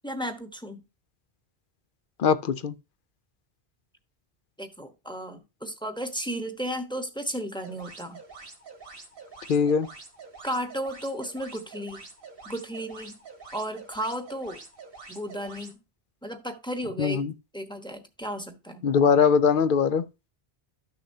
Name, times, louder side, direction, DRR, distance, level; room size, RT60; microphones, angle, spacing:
voice 1, 0.0-0.8 4.6-8.2 10.4-12.0 12.4-13.2 13.5-14.6 15.1-15.8 16.2-17.3 17.5-18.9, equal, 5° left, 1.0 m, -34 dB
voice 2, 2.2-2.7 9.5-9.9 17.0-17.3 18.8-20.1, left 6 dB, 60° left, 0.7 m, -21 dB
sound 1, 7.6-15.7, right 4 dB, 65° right, 1.8 m, -46 dB
12.5 x 6.6 x 2.7 m
omnidirectional pair, 1.0 m